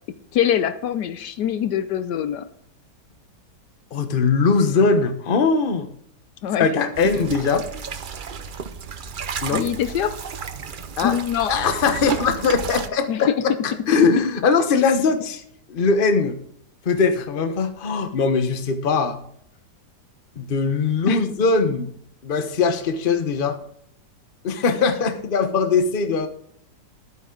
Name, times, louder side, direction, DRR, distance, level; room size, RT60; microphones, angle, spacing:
voice 1, 0.3-2.5 6.4-6.7 9.5-10.2 11.0-11.5 13.1-13.6 13.9-14.2 21.1-21.2, left 9 dB, 75° left, 12 dB, 1.2 m, -23 dB
voice 2, 3.9-5.9 6.6-7.7 9.4-9.7 11.0-11.2 11.5-13.3 13.6-15.4 15.7-16.4 16.8-19.2 20.4-21.9 22.2-23.6 24.4-26.3, left 4 dB, 35° left, 9 dB, 1.0 m, -21 dB
sound 1, 6.9-12.9, right 6 dB, 70° right, 0.4 m, -33 dB
12.0 x 9.1 x 3.8 m, 0.67 s
omnidirectional pair, 1.9 m